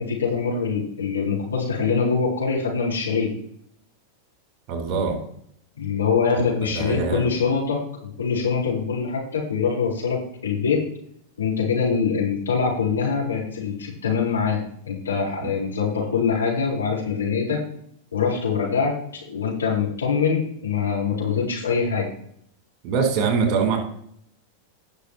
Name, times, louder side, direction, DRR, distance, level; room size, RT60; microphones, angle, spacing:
voice 1, 0.0-3.3 5.8-10.8 11.4-17.6 18.1-22.1, left 5 dB, 70° left, -4 dB, 4.3 m, -24 dB
voice 2, 4.7-5.2 6.6-7.3 22.8-23.8, right 5 dB, 35° right, 3 dB, 3.7 m, -23 dB
19.0 x 6.7 x 3.0 m, 0.67 s
figure-of-eight pair, 90°, 0 cm